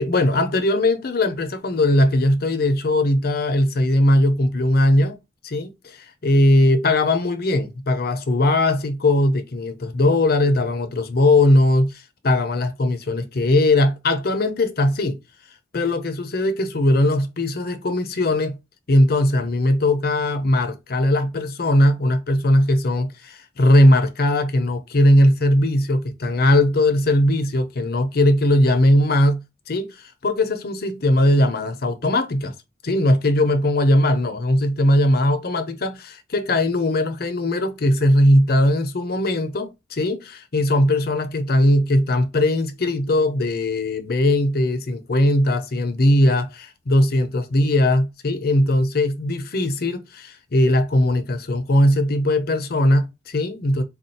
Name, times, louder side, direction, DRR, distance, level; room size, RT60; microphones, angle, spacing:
voice 1, 0.0-5.2 5.4-15.2 15.7-18.6 18.9-32.5 32.8-53.8, left 1 dB, 60° left, 0.7 m, -19 dB
4.2 x 2.4 x 2.7 m
head